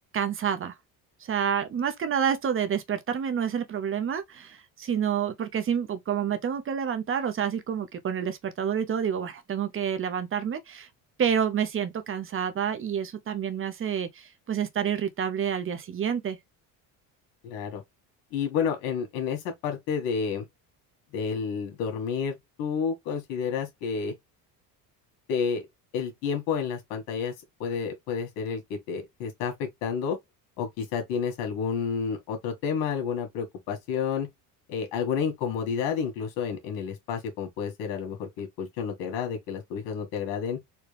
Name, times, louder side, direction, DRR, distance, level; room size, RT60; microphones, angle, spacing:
voice 1, 0.1-0.7 1.2-10.9 11.2-16.4, right 8 dB, 30° right, 0.7 m, -28 dB
voice 2, 17.4-17.8 18.3-20.5 21.1-24.1 25.3-25.6 25.9-27.3 27.6-30.2 30.6-34.3 34.7-40.6, left 6 dB, 85° left, 1.8 m, -30 dB
4.3 x 2.2 x 3.4 m
cardioid pair, 115°, 40 cm